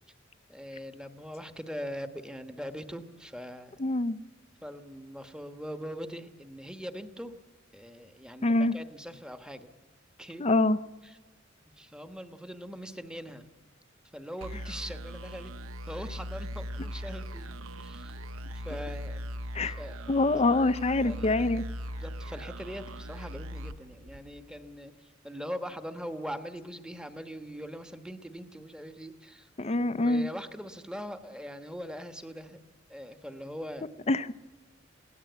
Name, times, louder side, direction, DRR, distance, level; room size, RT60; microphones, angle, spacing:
voice 1, 0.5-3.8 4.6-7.3 7.7-9.7 10.2-10.4 11.0-11.2 11.8-13.5 14.1-15.5 15.9-18.2 18.5-19.2 19.6-20.4 21.0-21.4 22.0-29.5 29.8-32.6 32.9-34.1, equal, 5° right, 9 dB, 1.2 m, -41 dB
voice 2, 3.8-4.2 8.4-8.7 10.4-10.8 19.5-19.8 20.1-21.6 29.6-30.3 34.1-34.3, left 2 dB, 30° left, 14 dB, 0.6 m, -25 dB
sound 1, 14.4-24.7, equal, 90° right, 0.9 m, -40 dB
22.5 x 17.5 x 8.1 m, 1.2 s
head